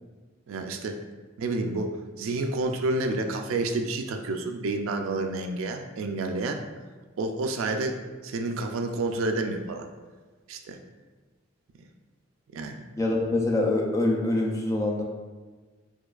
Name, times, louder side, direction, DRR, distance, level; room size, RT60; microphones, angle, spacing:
voice 1, 0.5-1.0 1.4-6.6 7.2-9.9 10.5-10.8 12.5-12.8, right 2 dB, 90° right, 5 dB, 0.4 m, -29 dB
voice 2, 13.0-15.0, left 2 dB, 15° left, 0 dB, 0.3 m, -25 dB
4.4 x 2.3 x 2.4 m, 1.3 s
head